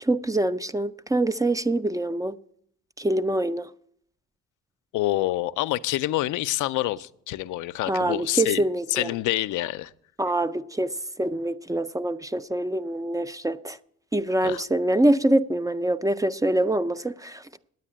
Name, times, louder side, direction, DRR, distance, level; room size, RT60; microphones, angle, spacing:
voice 1, 0.0-2.4 3.0-3.7 7.9-9.1 10.2-13.8 14.1-17.4, right 1 dB, 10° right, 0.4 m, -25 dB
voice 2, 4.9-8.6 8.9-9.9 14.4-14.6, left 16 dB, 85° left, 0.5 m, -27 dB
9.6 x 9.1 x 8.6 m
cardioid pair, 90°, 30 cm